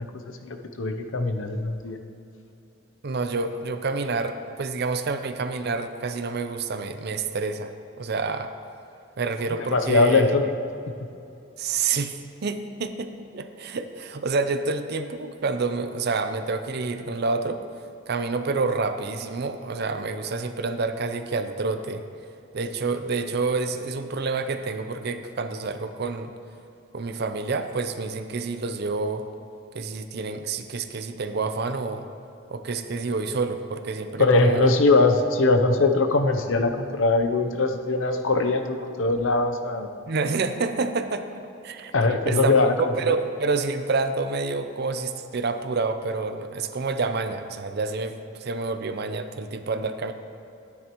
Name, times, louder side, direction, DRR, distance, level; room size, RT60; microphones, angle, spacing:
voice 1, 0.0-2.0 9.7-10.4 34.2-39.9 41.9-43.1, left 3 dB, 75° left, 6 dB, 0.7 m, -21 dB
voice 2, 3.0-7.7 8.0-8.5 9.2-10.3 11.6-17.6 18.1-22.0 22.5-26.3 26.9-29.2 29.7-32.1 32.5-34.7 40.1-41.3 41.6-41.9 42.3-48.1 48.4-50.1, right 4 dB, 55° right, 9 dB, 0.5 m, -28 dB
12.0 x 9.7 x 3.0 m, 2.7 s
head